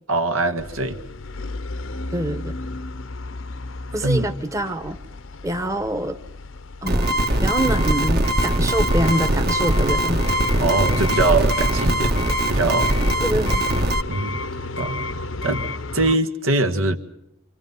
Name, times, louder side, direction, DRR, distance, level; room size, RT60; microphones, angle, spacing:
voice 1, 0.1-1.0 4.0-4.3 10.6-12.2 12.5-12.9 14.1-14.4 14.8-15.0 15.4-17.0, right 3 dB, 85° right, 6 dB, 1.8 m, -22 dB
sound 1, 0.6-16.2, left 2 dB, 75° left, 0.8 m, -31 dB
voice 2, 2.1-2.6 3.9-5.0 5.4-6.2 6.8-10.2 12.9-13.7, right 1 dB, 15° right, 7 dB, 1.0 m, -25 dB
sound 2, 6.9-14.0, right 1 dB, 50° right, 1.5 m, -21 dB
28.0 x 27.0 x 5.6 m, 0.81 s
head